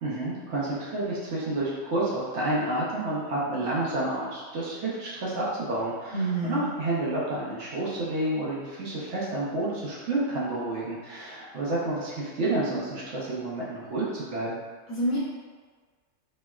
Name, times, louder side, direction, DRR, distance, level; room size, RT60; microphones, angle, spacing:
voice 1, 0.0-14.6, right 2 dB, 60° right, -6 dB, 0.9 m, -30 dB
voice 2, 6.1-6.7 14.9-15.2, right 1 dB, 70° left, -9 dB, 1.2 m, -27 dB
4.2 x 2.1 x 2.2 m, 1.5 s
omnidirectional pair, 1.5 m